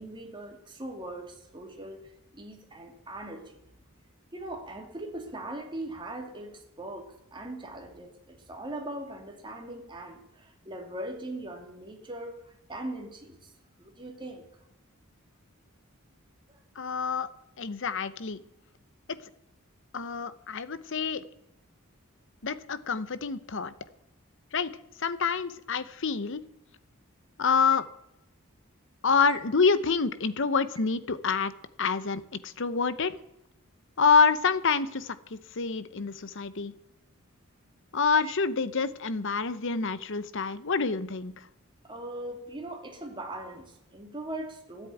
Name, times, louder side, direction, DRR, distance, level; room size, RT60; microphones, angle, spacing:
voice 1, 0.0-2.0 2.3-3.6 4.3-12.4 12.7-13.4 13.8-14.5 29.3-29.4 38.2-38.3 41.8-44.9, right 1 dB, 20° right, 2 dB, 2.6 m, -40 dB
voice 2, 16.8-17.3 17.6-18.4 19.9-21.2 22.4-23.7 24.5-24.7 25.0-26.4 27.4-27.8 29.0-31.5 31.8-33.1 34.0-36.7 37.9-41.4, left 5 dB, 60° left, 15 dB, 0.8 m, -27 dB
13.5 x 8.3 x 9.1 m, 0.84 s
head